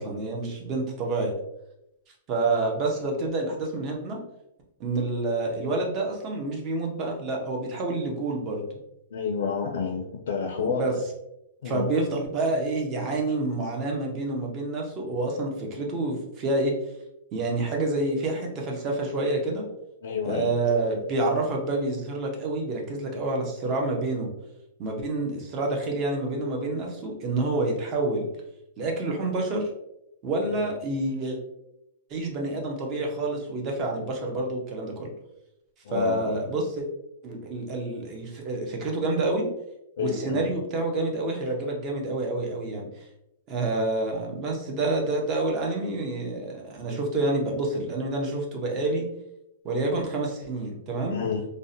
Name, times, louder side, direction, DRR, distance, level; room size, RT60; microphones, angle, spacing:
voice 1, 0.0-1.3 2.3-4.2 4.8-8.6 10.6-10.9 11.6-16.7 17.3-19.6 20.2-24.3 24.8-28.3 28.8-29.7 30.2-31.4 32.1-35.1 35.9-36.9 37.2-39.5 40.0-42.9 43.5-49.1 49.6-51.2, right 2 dB, 25° right, 1 dB, 0.5 m, -28 dB
voice 2, 9.1-11.0 11.6-11.9 20.0-20.5 30.6-30.7 35.8-36.2 40.0-40.5 51.1-51.5, left 6 dB, 70° left, 1 dB, 0.4 m, -29 dB
2.6 x 2.0 x 2.6 m, 0.84 s
supercardioid pair, 170°, 0 cm